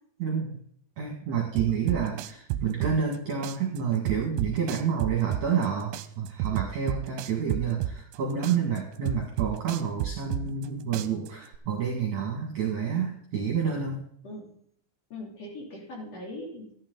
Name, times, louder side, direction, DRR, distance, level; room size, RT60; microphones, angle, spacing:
voice 1, 0.2-0.6 1.0-14.0, right 7 dB, 50° right, -1 dB, 2.7 m, -29 dB
voice 2, 1.5-2.0 14.2-14.5 15.1-16.7, left 1 dB, 35° left, -1 dB, 3.7 m, -40 dB
sound 1, 1.6-3.2 3.4-5.7 5.9-8.2 8.4-10.7 10.9-11.6, right 12 dB, 85° right, 2.9 m, -31 dB
14.0 x 11.0 x 4.0 m, 0.66 s
omnidirectional pair, 5.4 m